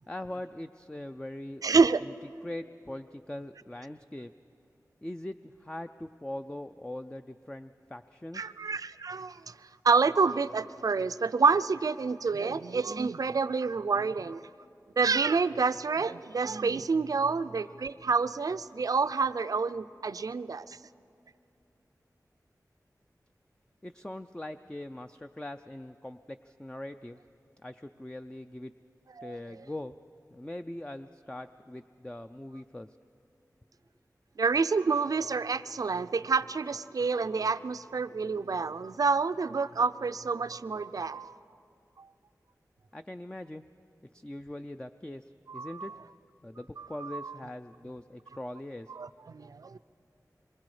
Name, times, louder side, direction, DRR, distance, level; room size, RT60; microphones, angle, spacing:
voice 1, 0.1-1.6 2.4-4.3 5.0-8.5 23.8-27.2 27.6-28.7 29.2-30.0 30.3-32.9 42.9-43.6 44.1-45.9 46.4-48.9, left 1 dB, 15° left, 8 dB, 0.4 m, -41 dB
voice 2, 1.6-2.0 8.3-9.5 9.8-14.4 15.0-20.8 29.2-29.4 34.4-41.4 45.5-46.0 46.8-47.4 48.9-49.8, right 4 dB, 65° right, 13 dB, 0.4 m, -28 dB
26.5 x 23.0 x 4.9 m, 2.6 s
wide cardioid pair, 65°, 7 cm